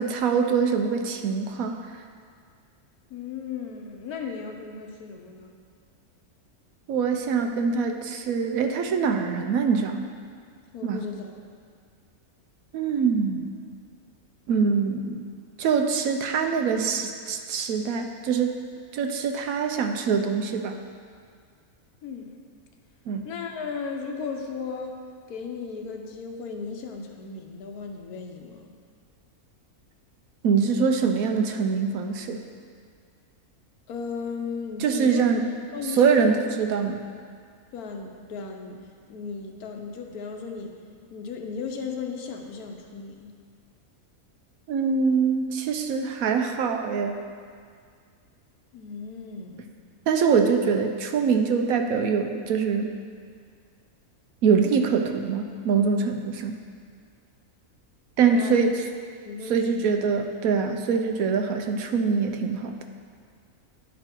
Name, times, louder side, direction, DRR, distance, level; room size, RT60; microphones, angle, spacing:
voice 1, 0.0-2.0 6.9-10.1 10.8-11.1 12.7-13.6 14.5-15.2 15.6-20.8 23.1-23.3 30.4-32.4 34.8-35.5 35.9-37.0 44.7-47.2 50.1-52.9 54.4-56.6 58.2-58.8 59.5-62.8, right 5 dB, 75° right, 5 dB, 1.0 m, -24 dB
voice 2, 3.1-5.5 10.7-11.3 22.0-22.3 23.2-25.0 25.3-28.7 33.9-36.4 36.8-37.0 37.7-38.8 39.1-40.7 41.1-43.3 48.7-49.6 58.3-58.6 59.2-59.9, left 5 dB, 80° left, 3 dB, 1.3 m, -36 dB
10.5 x 5.2 x 4.4 m, 2.1 s
omnidirectional pair, 1.6 m